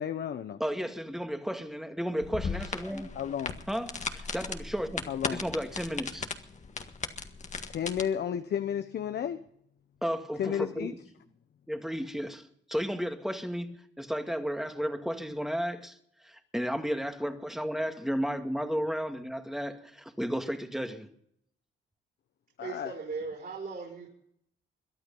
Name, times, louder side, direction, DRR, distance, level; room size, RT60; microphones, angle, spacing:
voice 1, 0.0-0.6 3.1-3.6 5.1-5.4 7.7-9.4 10.4-10.9 22.6-22.9, left 9 dB, 55° left, 0.9 m, -32 dB
voice 2, 0.6-3.1 3.7-6.3 10.0-10.9 11.7-16.0 16.2-21.1, equal, ahead, 2.0 m, -33 dB
sound 1, 2.2-8.0, left 5 dB, 35° left, 1.7 m, -37 dB
voice 3, 22.6-24.1, right 4 dB, 50° right, 5.4 m, -38 dB
22.5 x 11.5 x 5.5 m
cardioid pair, 90°, 20 cm